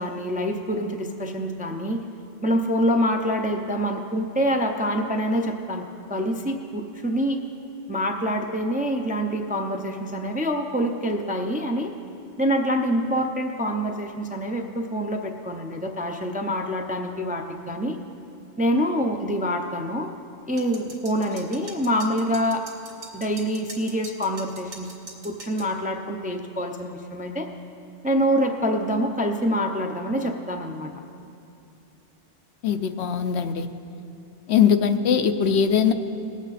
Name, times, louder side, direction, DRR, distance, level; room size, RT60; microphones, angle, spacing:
voice 1, 0.0-2.0 2.4-7.4 7.9-11.9 12.4-18.0 18.6-20.1 20.5-22.6 23.1-24.9 25.2-27.5 28.0-30.9, equal, 10° right, 3 dB, 0.4 m, -26 dB
sound 1, 20.6-25.7, right 2 dB, 70° right, 1.9 m, -42 dB
voice 2, 32.6-33.7 34.5-35.9, left 7 dB, 70° left, 8 dB, 0.8 m, -21 dB
19.0 x 8.2 x 4.1 m, 2.7 s
omnidirectional pair, 1.2 m